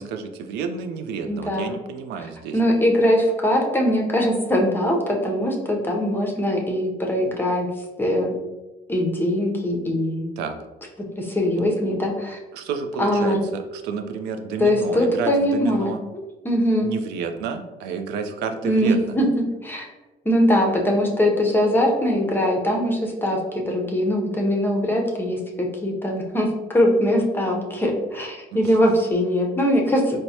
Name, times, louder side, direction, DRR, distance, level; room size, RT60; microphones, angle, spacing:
voice 1, 0.0-2.6 10.4-10.6 12.5-16.0 16.8-19.2 28.5-28.7, right 6 dB, 90° right, 7 dB, 0.4 m, -30 dB
voice 2, 1.3-1.7 2.5-7.7 8.0-8.3 8.9-10.3 11.2-12.4 13.0-13.4 14.6-15.9 16.4-16.9 18.6-19.3 19.6-19.8 20.2-30.2, equal, 10° left, 0 dB, 0.6 m, -21 dB
4.5 x 2.1 x 2.7 m, 1.1 s
cardioid pair, 110°, 17 cm